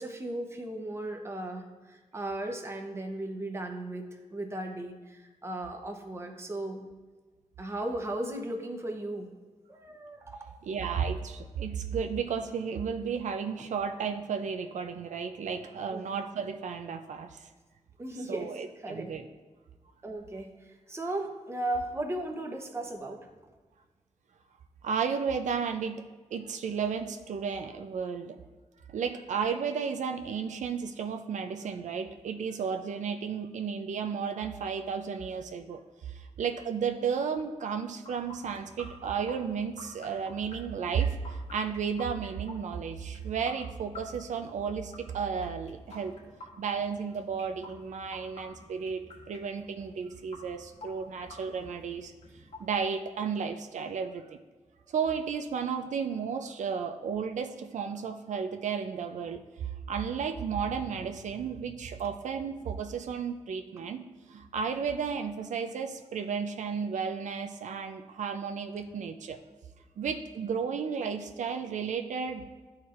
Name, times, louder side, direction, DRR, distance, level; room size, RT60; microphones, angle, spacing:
voice 1, 0.0-6.8 7.6-9.3 9.7-10.5 15.9-16.0 18.0-18.5 18.8-19.2 20.0-23.3, right 1 dB, 20° right, 3 dB, 0.8 m, -36 dB
voice 2, 10.6-17.5 18.3-19.2 24.8-26.0 26.3-28.4 28.9-46.2 46.6-52.1 52.6-54.4 54.9-69.4 70.0-72.5, right 6 dB, 85° right, 7 dB, 0.4 m, -33 dB
sound 1, 38.1-52.8, left 1 dB, 70° left, 1.6 m, -51 dB
12.5 x 4.3 x 2.5 m, 1.3 s
wide cardioid pair, 150°, 12 cm